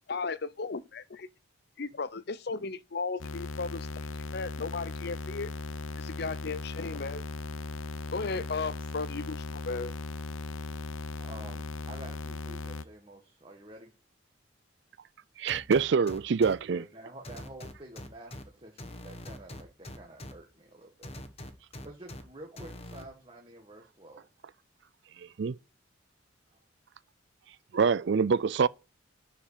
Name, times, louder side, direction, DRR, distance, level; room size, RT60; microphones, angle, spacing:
voice 1, 0.1-1.3 1.8-4.1 4.3-5.5 6.0-7.2 8.1-9.9, left 4 dB, 55° left, 0.6 m, -35 dB
sound 1, 3.2-12.8, left 3 dB, 90° left, 0.8 m, -38 dB
voice 2, 11.2-13.9 16.7-21.1 21.8-24.3 26.5-26.6, right 1 dB, 25° right, 1.5 m, -49 dB
voice 3, 15.4-16.8 25.2-25.6 27.7-28.7, right 5 dB, 60° right, 0.4 m, -25 dB
sound 2, 15.5-16.5 17.2-18.4 18.8-20.3 21.0-22.2 22.6-23.0, left 1 dB, 30° left, 1.3 m, -43 dB
12.0 x 5.0 x 6.7 m
head